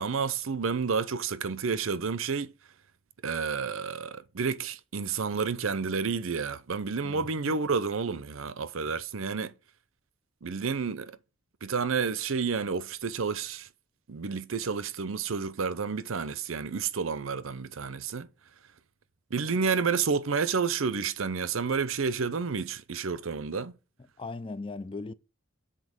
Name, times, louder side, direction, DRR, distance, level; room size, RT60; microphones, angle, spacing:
voice 1, 0.0-2.5 3.2-9.5 10.4-11.2 11.6-13.7 14.1-18.3 19.3-23.7, right 5 dB, 70° right, 0.7 m, -30 dB
voice 2, 7.0-7.3 24.0-25.1, left 3 dB, 25° left, 0.4 m, -38 dB
7.7 x 4.2 x 6.3 m
head